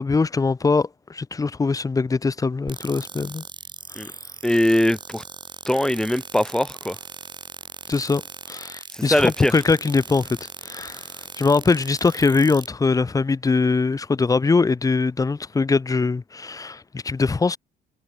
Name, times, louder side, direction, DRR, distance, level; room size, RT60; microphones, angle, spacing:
voice 1, 0.0-3.4 7.9-8.2 8.5-11.0 11.4-17.6, left 4 dB, 20° left, 1.5 m, -22 dB
sound 1, 2.7-12.7, right 5 dB, 25° right, 2.6 m, -39 dB
voice 2, 4.4-5.2 5.7-7.0 8.9-9.5, left 1 dB, 5° left, 1.8 m, -21 dB
cardioid pair, 110°, 17 cm